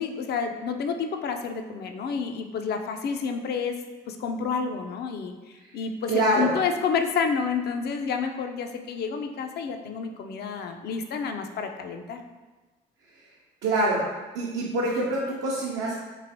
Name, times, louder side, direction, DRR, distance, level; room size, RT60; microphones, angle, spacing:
voice 1, 0.0-3.8 4.1-12.2, left 5 dB, 55° left, 6 dB, 0.4 m, -29 dB
voice 2, 6.1-6.5 13.6-14.0 14.3-15.9, right 1 dB, 75° right, -5 dB, 0.6 m, -25 dB
3.1 x 2.5 x 2.7 m, 1.2 s
supercardioid pair, 55°, 20 cm